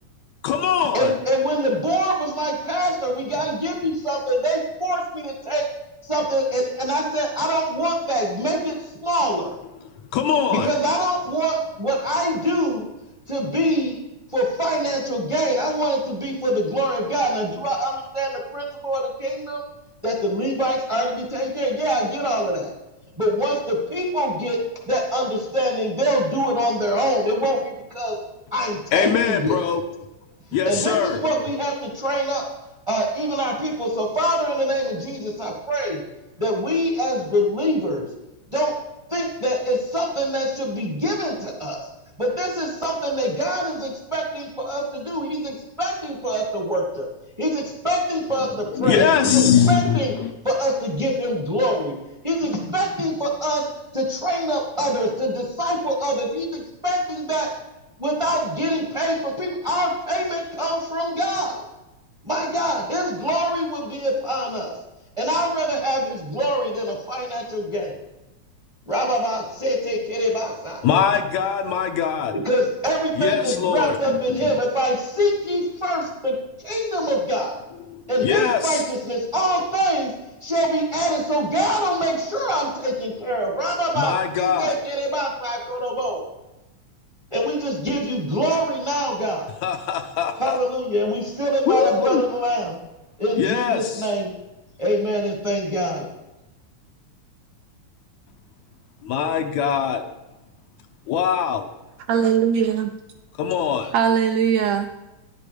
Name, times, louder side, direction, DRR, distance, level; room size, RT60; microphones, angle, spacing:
voice 1, 0.4-1.2 10.1-10.7 28.9-29.8 30.5-31.5 48.3-50.3 70.8-72.3 73.1-74.6 77.9-78.9 84.0-84.8 89.6-90.6 91.7-92.2 93.4-94.1 99.0-100.0 101.1-101.7 103.4-103.9, left 8 dB, 75° left, 6 dB, 1.9 m, -22 dB
voice 2, 0.9-5.6 6.0-9.5 10.5-12.9 13.3-13.9 14.3-19.6 20.0-22.7 23.2-24.6 24.9-28.2 28.5-29.6 30.6-32.4 32.9-36.0 36.4-38.1 38.5-38.7 39.1-41.8 42.2-47.1 47.4-50.1 50.4-51.9 52.2-53.7 53.9-57.5 58.0-61.6 62.2-64.7 65.2-68.0 68.9-70.8 72.3-77.6 78.1-80.1 80.4-86.2 87.3-89.5 90.4-92.8 93.2-94.3 94.8-96.0, equal, 20° right, 0 dB, 0.9 m, -24 dB
voice 3, 102.1-102.9 103.9-104.9, right 8 dB, 75° right, 6 dB, 1.7 m, -20 dB
10.5 x 8.4 x 5.2 m, 0.99 s
omnidirectional pair, 3.6 m